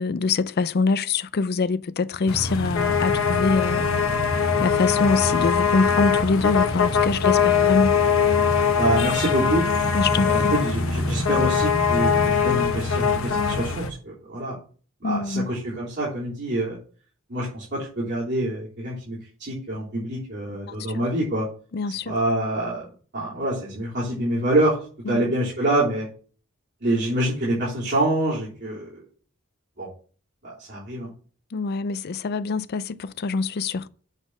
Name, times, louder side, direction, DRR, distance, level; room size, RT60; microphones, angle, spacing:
voice 1, 0.0-3.9 4.3-8.0 9.9-10.5 15.0-15.5 20.9-21.0 21.7-22.1 25.1-25.2 31.5-33.9, left 4 dB, 50° left, 0.4 m, -24 dB
sound 1, 2.3-13.9, left 6 dB, 70° left, 1.0 m, -22 dB
voice 2, 8.8-9.6 10.1-14.6 15.0-16.8 17.3-21.5 22.1-22.8 23.1-24.8 25.1-26.1 26.8-29.0 29.8-29.9 30.4-31.1, right 1 dB, 55° right, 3.6 m, -26 dB
8.1 x 4.1 x 6.3 m
head